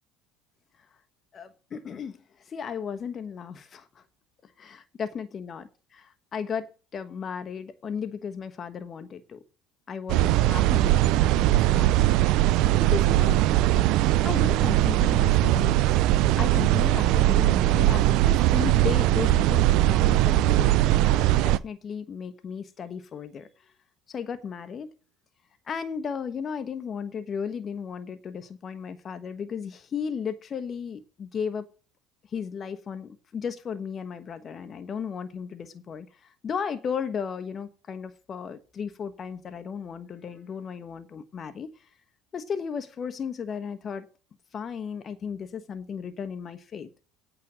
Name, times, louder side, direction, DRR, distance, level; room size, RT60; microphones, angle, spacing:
voice 1, 1.3-4.0 4.4-9.4 9.9-12.5 12.8-13.5 14.2-15.9 16.3-23.5 24.1-24.9 25.7-31.7 32.3-41.9 42.3-44.1 44.5-46.9, left 6 dB, 40° left, 1.2 m, -35 dB
sound 1, 10.1-21.6, right 15 dB, 65° right, 0.5 m, -21 dB
8.6 x 6.3 x 7.6 m
hypercardioid pair, 80°, 0 cm